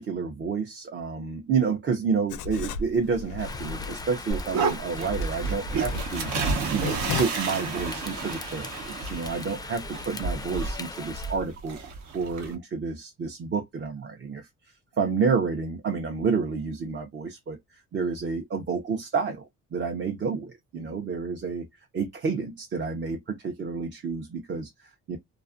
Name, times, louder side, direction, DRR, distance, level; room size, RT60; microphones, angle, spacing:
voice 1, 0.0-6.3 6.7-14.5 15.0-21.7 21.9-25.2, right 5 dB, 40° right, 0.5 m, -29 dB
Writing, 2.3-7.2, left 6 dB, 80° left, 0.5 m, -36 dB
Rain, 3.4-11.4, left 3 dB, 15° left, 0.3 m, -40 dB
sound 1, 4.3-12.5, right 4 dB, 75° right, 0.8 m, -31 dB
2.4 x 2.4 x 2.4 m
cardioid pair, 90°, 30 cm